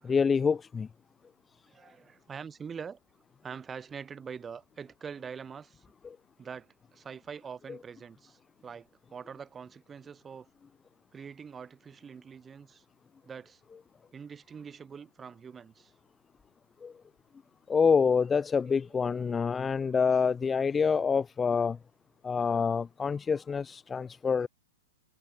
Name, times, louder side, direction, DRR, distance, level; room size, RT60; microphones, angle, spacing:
voice 1, 0.0-0.9 6.0-6.2 16.8-16.9 17.7-21.8 22.2-24.5, left 5 dB, 15° left, 0.3 m, -27 dB
voice 2, 1.7-3.0 3.4-5.8 6.4-10.5 11.1-12.8 13.2-13.6 14.1-15.9 18.9-19.1, right 6 dB, 15° right, 6.7 m, -44 dB
figure-of-eight pair, 105°, 0 cm